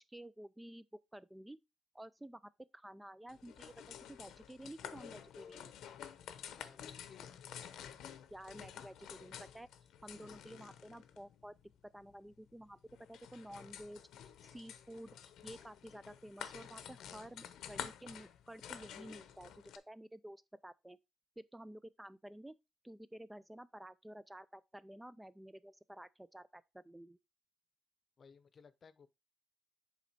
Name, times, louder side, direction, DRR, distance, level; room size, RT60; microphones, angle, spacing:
voice 1, 0.1-1.6 1.9-5.7 8.3-9.7 10.0-11.6 11.8-12.8 13.1-21.0 21.4-22.6 22.8-27.2, right 1 dB, 10° right, 0.3 m, -52 dB
sound 1, 3.3-19.8, left 9 dB, 80° left, 0.7 m, -51 dB
voice 2, 6.6-7.4 17.8-18.2 28.2-29.1, left 6 dB, 45° left, 0.7 m, -60 dB
7.2 x 4.1 x 4.2 m
cardioid pair, 90°, 0 cm